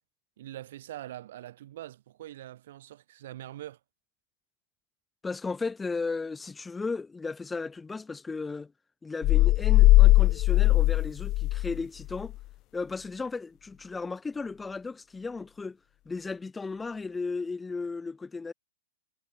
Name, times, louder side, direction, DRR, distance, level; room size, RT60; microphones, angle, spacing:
voice 1, 0.4-3.8, right 13 dB, 55° right, 2.4 m, -43 dB
voice 2, 5.2-8.7 9.0-12.4 12.7-15.8 16.1-18.5, left 4 dB, 10° left, 4.1 m, -35 dB
sound 1, 9.2-11.8 12.1-12.3, left 17 dB, 35° left, 0.5 m, -19 dB
figure-of-eight pair, 105°, 0 cm